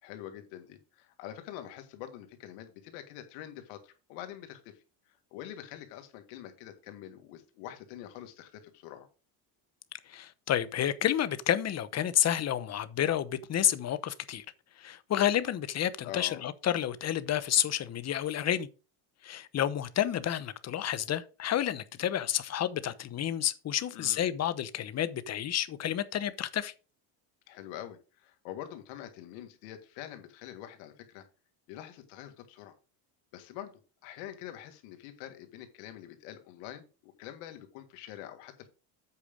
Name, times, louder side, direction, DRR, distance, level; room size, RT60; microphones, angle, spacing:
voice 1, 0.0-9.1 16.0-16.4 23.9-24.3 27.5-31.3 31.7-32.8 33.3-33.7 34.0-38.7, left 11 dB, 85° left, 1.8 m, -45 dB
voice 2, 10.1-14.4 14.8-18.7 19.2-26.7, left 10 dB, 35° left, 0.8 m, -30 dB
8.3 x 5.0 x 5.1 m
cardioid pair, 110°, 44 cm